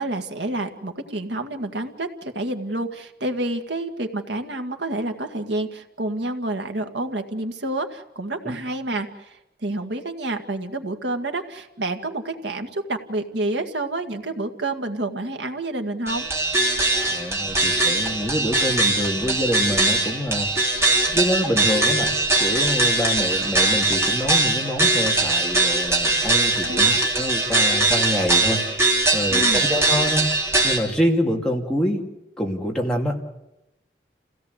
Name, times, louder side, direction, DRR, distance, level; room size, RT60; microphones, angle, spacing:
voice 1, 0.0-16.3 26.6-27.0 29.3-29.7, right 2 dB, 85° right, 5 dB, 2.0 m, -29 dB
sound 1, 16.1-30.8, right 2 dB, 15° right, 3.6 m, -21 dB
voice 2, 16.9-20.8 21.1-30.3 30.6-32.0 32.4-33.2, equal, 5° left, -1 dB, 2.6 m, -26 dB
28.5 x 17.0 x 8.2 m, 0.92 s
head